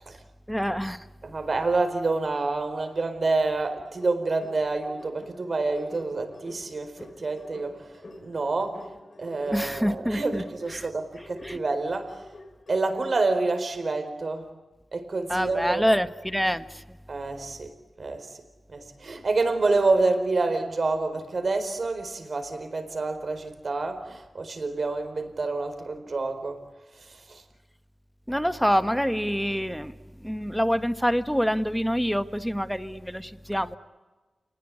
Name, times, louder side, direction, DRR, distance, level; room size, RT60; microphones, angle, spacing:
voice 1, 0.5-1.0 9.5-10.4 10.7-10.9 11.4-11.6 15.3-16.8 28.3-29.9 30.2-33.8, equal, ahead, 1.4 m, -26 dB
voice 2, 1.2-7.9 8.2-8.9 9.2-12.2 12.7-14.5 14.9-15.8 17.1-17.7 18.0-18.3 18.7-26.6 27.0-27.4, right 3 dB, 55° right, 4.5 m, -28 dB
sound 1, 3.6-13.4, left 2 dB, 45° left, 4.3 m, -48 dB
29.5 x 20.0 x 9.7 m
wide cardioid pair, 85°, 0 cm